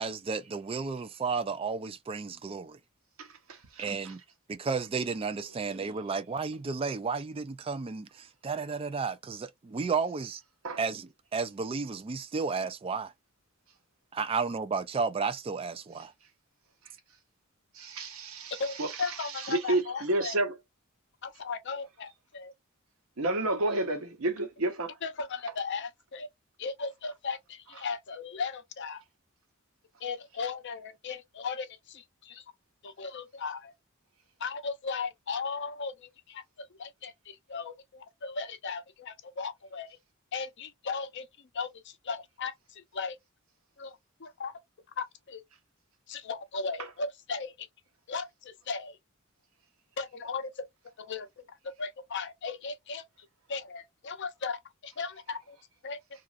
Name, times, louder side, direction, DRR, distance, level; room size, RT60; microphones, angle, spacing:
voice 1, 0.0-2.8 3.8-4.2 4.5-10.4 10.8-13.1 14.1-16.1, right 5 dB, 25° right, 0.3 m, -32 dB
voice 2, 3.2-4.1 10.6-10.8 17.7-20.5 23.2-24.9, right 2 dB, 85° right, 0.9 m, -31 dB
voice 3, 18.5-20.4 21.2-22.5 25.0-26.3 26.6-29.0 30.0-32.4 32.8-33.7 34.4-40.0 40.3-41.3 41.5-43.2 43.8-44.5 45.0-45.4 46.1-47.7 48.1-49.0 50.0-50.7 51.0-53.0 53.5-55.6 55.8-56.0, left 5 dB, 60° left, 0.6 m, -37 dB
2.9 x 2.4 x 2.4 m
head